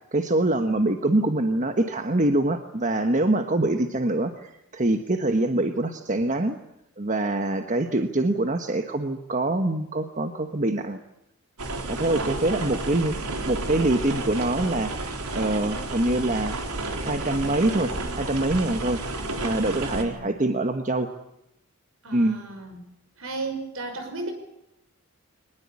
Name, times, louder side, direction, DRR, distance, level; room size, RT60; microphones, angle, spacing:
voice 1, 0.0-6.6 7.0-11.0 11.9-16.5 17.0-19.0 19.4-21.1 22.1-22.4, right 2 dB, 35° right, 7 dB, 1.2 m, -24 dB
sound 1, 11.6-20.0, right 2 dB, 85° right, 3.8 m, -31 dB
voice 2, 12.0-12.7 19.7-20.3 22.0-22.8 23.2-24.3, right 3 dB, 70° right, 7 dB, 5.5 m, -35 dB
23.5 x 20.0 x 8.5 m, 0.85 s
head